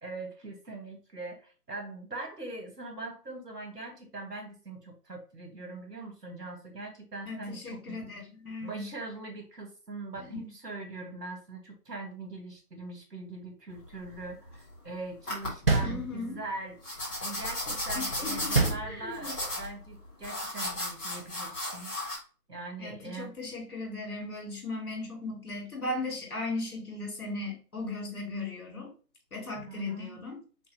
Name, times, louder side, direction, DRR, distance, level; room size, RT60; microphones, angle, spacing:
voice 1, 0.0-8.0 8.6-21.9 22.5-23.3 29.7-30.2, right 2 dB, 75° right, 2 dB, 1.9 m, -42 dB
voice 2, 7.3-8.9 10.2-10.5 15.8-16.4 17.9-19.4 22.8-28.9 29.3-30.4, left 2 dB, 60° left, -1 dB, 2.6 m, -37 dB
sound 1, 13.7-14.8 15.3-15.7 16.8-22.2, left 1 dB, 10° left, 1.4 m, -35 dB
sound 2, 15.7-16.6 18.5-19.5, right 4 dB, 40° right, 0.6 m, -27 dB
4.4 x 3.9 x 2.9 m, 0.37 s
figure-of-eight pair, 150°, 48 cm